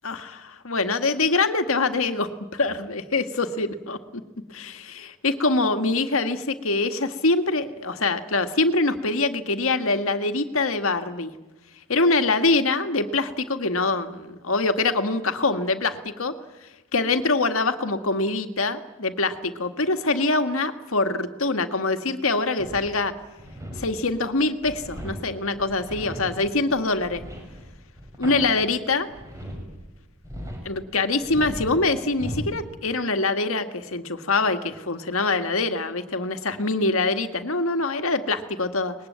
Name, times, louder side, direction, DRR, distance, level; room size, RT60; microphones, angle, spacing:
voice 1, 0.0-4.0 4.5-11.3 11.9-16.4 16.9-23.1 23.8-27.2 28.2-29.1 30.7-38.9, left 3 dB, 70° left, 8 dB, 1.8 m, -24 dB
sound 1, 22.6-29.9 30.2-30.8 31.2-32.7, equal, 15° right, 6.4 m, -37 dB
23.5 x 20.5 x 9.5 m, 1.1 s
head